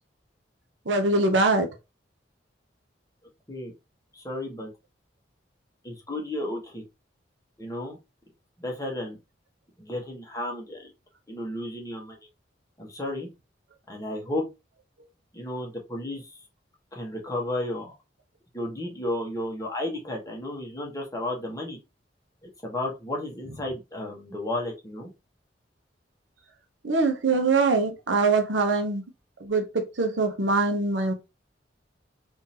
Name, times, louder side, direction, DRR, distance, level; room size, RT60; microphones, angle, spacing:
voice 1, 0.9-1.7 26.8-29.0 29.4-31.1, right 3 dB, 75° right, 0.7 m, -23 dB
voice 2, 4.1-4.7 5.8-6.8 7.6-8.0 8.6-9.2 9.8-10.9 11.3-12.2 12.8-13.3 13.9-14.4 15.3-16.4 16.9-17.9 18.5-21.8 22.6-25.1, left 1 dB, 20° left, 1.1 m, -33 dB
3.7 x 2.6 x 2.8 m
head